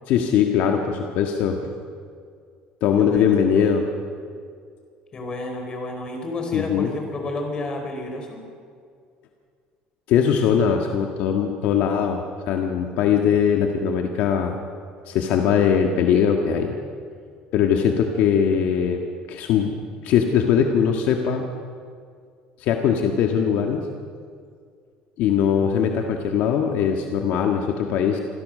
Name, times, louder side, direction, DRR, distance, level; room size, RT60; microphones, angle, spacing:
voice 1, 0.1-1.6 2.8-3.8 6.5-6.9 10.1-12.2 12.5-14.6 15.1-16.7 17.5-19.0 19.3-19.7 20.0-21.4 22.6-23.9 25.2-28.2, left 8 dB, 65° left, 3 dB, 1.6 m, -21 dB
voice 2, 2.9-3.8 5.1-8.4, left 2 dB, 30° left, 3 dB, 4.6 m, -31 dB
26.0 x 16.5 x 6.6 m, 2.2 s
cardioid pair, 150°, 3 cm